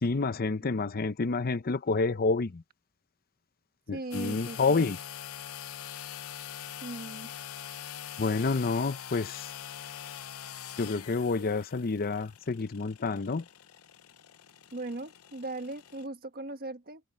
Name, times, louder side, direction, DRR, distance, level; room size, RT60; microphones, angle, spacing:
voice 1, 0.0-2.6 3.9-5.0 8.2-9.5 10.8-13.4, left 4 dB, 45° left, 0.6 m, -29 dB
voice 2, 3.9-4.9 6.8-7.3 14.7-17.0, right 2 dB, 45° right, 1.4 m, -38 dB
sound 1, 4.1-16.1, left 10 dB, 80° left, 0.7 m, -44 dB
head